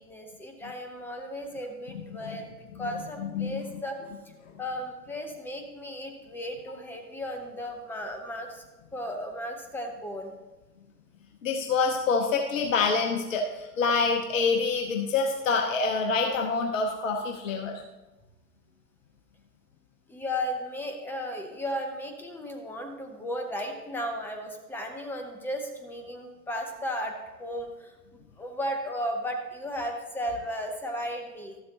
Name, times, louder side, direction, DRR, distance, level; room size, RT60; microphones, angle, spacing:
voice 1, 0.0-2.5 2.7-4.0 4.6-8.6 8.9-10.3 20.1-27.1 27.4-27.9 28.4-31.6, equal, 5° left, 5 dB, 0.8 m, -35 dB
voice 2, 3.2-3.6 11.4-17.8, left 4 dB, 50° left, 2 dB, 1.0 m, -26 dB
12.5 x 7.7 x 2.9 m, 1.1 s
figure-of-eight pair, 105°, 49 cm